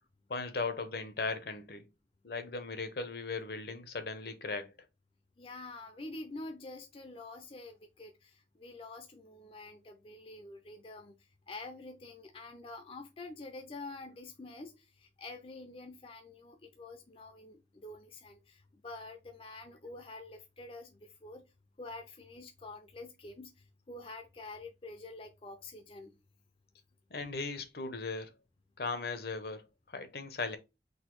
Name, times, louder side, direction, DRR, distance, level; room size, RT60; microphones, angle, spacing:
voice 1, 0.3-1.8 2.2-4.7 27.1-28.3 28.8-29.6 29.9-30.6, left 4 dB, 60° left, 0.8 m, -37 dB
voice 2, 5.4-21.5 21.8-26.2, left 2 dB, 30° left, 0.5 m, -47 dB
4.0 x 2.7 x 4.6 m
head